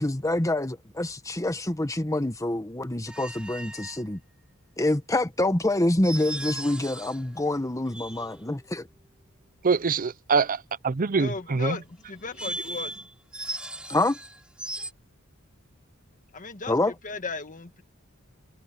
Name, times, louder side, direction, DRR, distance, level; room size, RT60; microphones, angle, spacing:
voice 1, 0.0-4.2 4.8-8.9 13.9-14.2 16.7-16.9, left 1 dB, 15° left, 1.2 m, -26 dB
sound 1, 3.1-4.0 6.0-7.3 7.8-8.6 12.1-14.9, right 1 dB, 5° right, 7.1 m, -37 dB
voice 2, 9.6-11.8, right 4 dB, 40° right, 0.6 m, -24 dB
voice 3, 11.2-13.1 16.3-16.7 17.0-17.8, left 4 dB, 40° left, 1.5 m, -36 dB
head